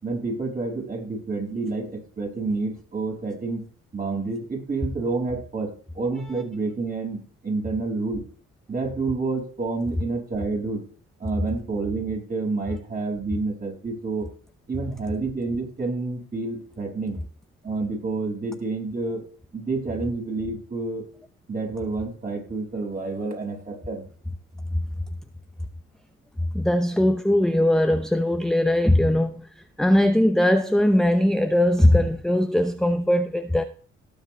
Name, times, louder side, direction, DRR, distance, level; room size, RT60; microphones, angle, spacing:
voice 1, 0.0-8.2 8.7-10.8 11.2-14.3 14.7-17.2 17.6-19.3 19.5-21.1 21.5-24.0, right 3 dB, 30° right, 6.1 m, -29 dB
voice 2, 26.5-29.4 29.8-33.6, left 1 dB, ahead, 0.8 m, -20 dB
18.0 x 7.5 x 3.3 m
cardioid pair, 90°, 30 cm